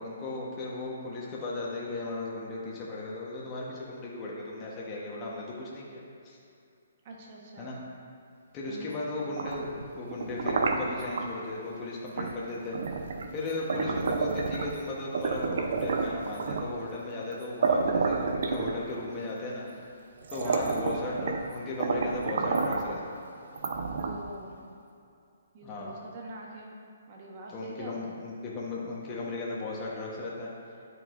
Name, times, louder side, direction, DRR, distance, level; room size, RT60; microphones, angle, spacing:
voice 1, 0.0-6.4 7.6-7.8 8.5-12.8 13.3-19.9 20.3-23.2 25.6-26.0 27.5-30.5, left 2 dB, 20° left, -5 dB, 1.0 m, -36 dB
voice 2, 7.0-7.8 8.7-9.1 13.7-14.1 20.4-20.8 24.0-24.7 25.5-26.7 27.1-28.2, right 1 dB, 35° right, -2 dB, 1.1 m, -44 dB
sound 1, 9.2-11.3 12.2-12.4 12.7-14.8 15.1-16.8 17.3-17.4 17.6-19.1 19.8-19.9 20.2-21.5 21.8-22.9 23.5-24.3, right 4 dB, 60° right, 0.6 m, -30 dB
10.5 x 4.7 x 2.5 m, 2.5 s
hypercardioid pair, 155°, 0 cm